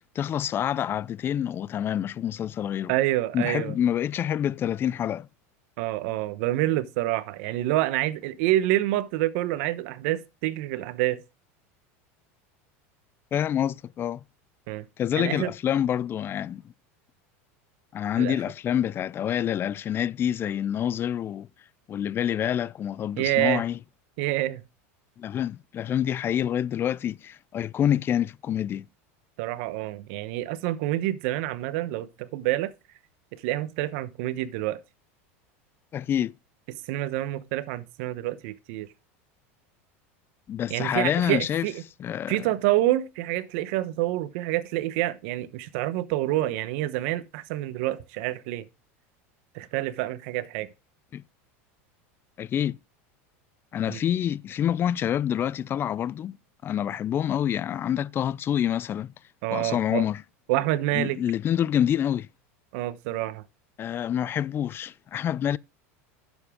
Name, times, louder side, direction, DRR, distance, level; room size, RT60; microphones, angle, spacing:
voice 1, 0.0-2.9 3.3-5.3 13.3-14.2 15.0-16.6 17.9-21.5 21.9-23.8 25.2-28.9 35.9-36.3 40.5-41.7 42.0-42.5 51.1-51.2 52.4-52.8 53.7-56.4 56.6-59.1 59.5-60.2 60.9-62.3 63.8-65.6, left 10 dB, 30° left, 0.4 m, -27 dB
voice 2, 2.9-3.7 5.8-11.2 14.7-14.9 15.2-15.5 18.2-18.4 23.2-23.6 24.2-24.6 29.4-32.7 33.4-34.8 36.9-38.9 40.7-41.8 42.3-48.6 49.5-50.7 53.9-54.0 59.4-60.0 60.5-61.2 62.7-63.4, right 15 dB, 65° right, 1.0 m, -27 dB
10.5 x 7.3 x 3.6 m
supercardioid pair, 120°, 8 cm